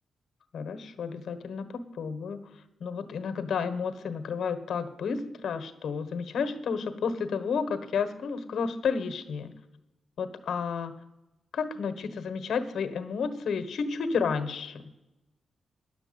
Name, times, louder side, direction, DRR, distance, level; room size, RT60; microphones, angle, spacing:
voice 1, 0.5-2.4 2.8-9.5 10.2-11.0 11.5-14.8, left 5 dB, 75° left, 9 dB, 1.3 m, -31 dB
10.5 x 7.2 x 8.6 m, 0.95 s
wide cardioid pair, 120°, 0 cm